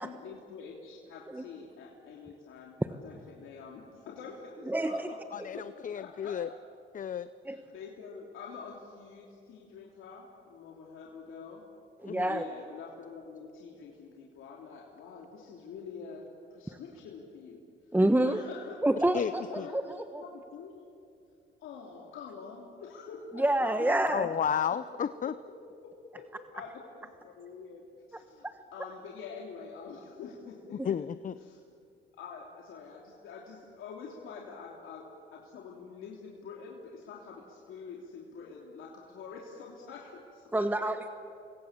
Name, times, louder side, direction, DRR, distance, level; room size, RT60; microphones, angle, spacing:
voice 1, 0.0-5.2 5.5-6.3 7.5-11.6 12.2-16.2 16.5-17.6 18.1-18.7 19.2-19.8 20.2-20.9 21.6-24.4 25.5-25.6 25.8-26.2 26.5-26.8 27.2-27.8 28.1-31.1 31.4-31.6 32.1-35.0 35.3-40.7, left 5 dB, 85° left, -2 dB, 3.1 m, -46 dB
voice 2, 4.7-5.1 5.4-5.5 7.5-7.6 12.0-12.4 17.9-18.4 18.8-19.4 19.7-20.2 23.4-24.3 28.4-28.5 30.8-30.9 40.5-41.1, right 1 dB, 10° right, 8 dB, 1.1 m, -27 dB
voice 3, 5.3-6.5 6.9-7.3 12.0-12.3 19.1-19.7 24.1-25.3 30.8-31.3, left 8 dB, 40° left, 13 dB, 0.7 m, -32 dB
30.0 x 24.0 x 7.4 m, 2.5 s
cardioid pair, 90°, 20 cm